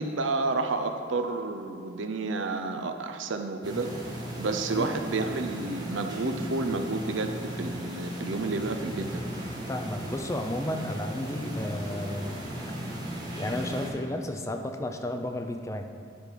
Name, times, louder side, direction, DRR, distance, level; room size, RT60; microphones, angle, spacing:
voice 1, 0.0-9.2, right 3 dB, 80° right, 7 dB, 0.6 m, -30 dB
sound 1, 3.6-13.9, right 1 dB, 20° right, 1.2 m, -37 dB
voice 2, 9.7-12.4 13.4-15.9, left 1 dB, 15° left, 5 dB, 0.4 m, -33 dB
10.0 x 5.1 x 4.6 m, 2.2 s
head